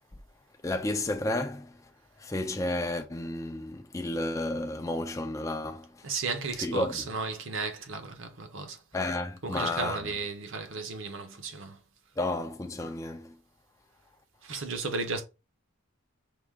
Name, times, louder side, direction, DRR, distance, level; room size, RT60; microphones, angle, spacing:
voice 1, 0.6-1.8 2.2-6.0 6.6-7.0 8.9-10.1 12.2-13.4, left 2 dB, 15° left, 0.4 m, -32 dB
voice 2, 6.0-8.8 9.4-11.8 14.4-15.2, right 4 dB, 60° right, 0.8 m, -34 dB
4.8 x 2.4 x 3.6 m
head